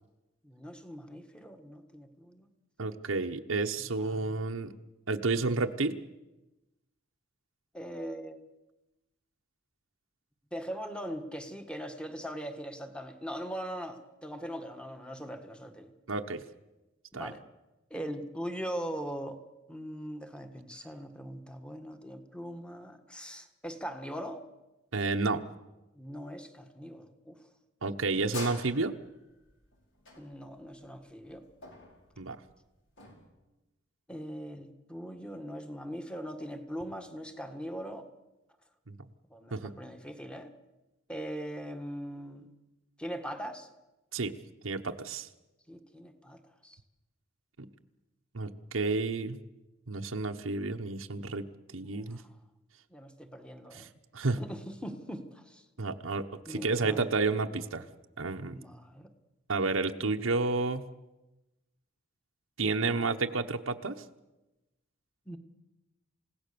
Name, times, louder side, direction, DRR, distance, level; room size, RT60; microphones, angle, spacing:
voice 1, 0.4-2.5 3.8-4.4 7.7-8.4 10.5-15.9 17.1-17.4 17.9-19.4 19.7-24.4 25.9-27.4 30.2-31.4 34.1-38.1 39.3-40.5 41.1-42.5 43.0-43.7 45.7-46.8 51.8-52.2 52.9-53.9 54.4-55.6 56.5-57.0 58.4-59.1 65.2-65.4, equal, 5° left, 7 dB, 1.6 m, -41 dB
voice 2, 2.8-4.7 5.1-6.0 16.1-16.4 17.1-17.3 24.9-25.4 27.8-28.9 32.2-32.4 38.9-39.0 39.5-39.7 44.1-44.3 44.6-45.3 47.6-47.7 48.3-49.4 49.9-51.5 51.7-52.2 54.1-54.4 55.8-57.8 58.2-58.6 59.5-60.9 62.6-64.0, right 3 dB, 90° right, 4 dB, 1.1 m, -31 dB
sound 1, 27.8-33.3, left 3 dB, 65° left, 5.0 m, -46 dB
28.5 x 17.0 x 6.9 m, 1.0 s
head